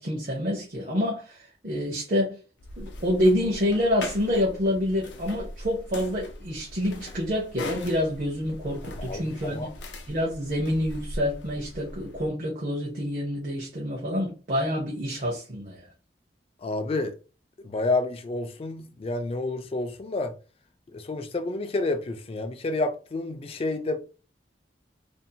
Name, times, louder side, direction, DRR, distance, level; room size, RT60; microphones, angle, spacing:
voice 1, 0.0-2.4 2.8-9.7 10.1-15.9, left 1 dB, 50° right, 0.7 m, -27 dB
sound 1, 2.6-12.3, left 1 dB, 90° left, 0.5 m, -41 dB
voice 2, 9.0-9.7 16.6-17.1 17.6-20.3 20.9-24.0, left 2 dB, 35° left, 0.3 m, -29 dB
2.6 x 2.0 x 2.7 m
head